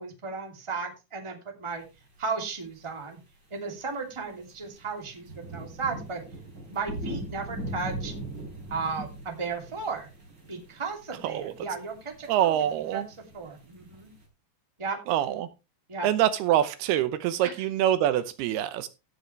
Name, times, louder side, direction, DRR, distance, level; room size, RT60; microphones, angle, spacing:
voice 1, 0.0-1.8 2.2-3.2 3.5-6.2 6.7-8.1 8.7-10.1 10.5-12.7 12.9-13.0 13.3-14.1 14.8-15.0 15.9-16.1 17.4-17.6, right 4 dB, 10° right, 1.8 m, -35 dB
sound 1, 2.7-2.8 4.2-14.2, right 1 dB, 25° right, 4.7 m, -40 dB
voice 2, 12.3-13.1 15.1-15.5 16.0-18.9, right 11 dB, 80° right, 2.8 m, -25 dB
16.0 x 7.7 x 3.2 m
omnidirectional pair, 4.6 m